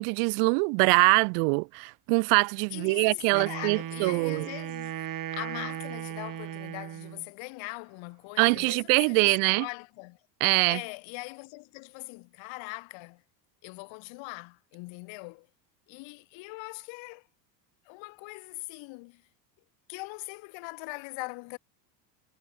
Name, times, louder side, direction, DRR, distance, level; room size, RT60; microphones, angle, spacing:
voice 1, 0.0-4.5 8.4-9.6 10.4-10.8, right 40 dB or more, 65° right, 1.8 m, -24 dB
voice 2, 2.7-10.2 10.7-13.2 13.6-15.5 15.9-17.3 17.8-19.2 19.9-21.6, left 26 dB, 60° left, 7.9 m, -41 dB
Wind instrument woodwind instrument, 3.3-7.3, right 11 dB, 40° right, 4.6 m, -37 dB
hypercardioid pair, 95°, 50 cm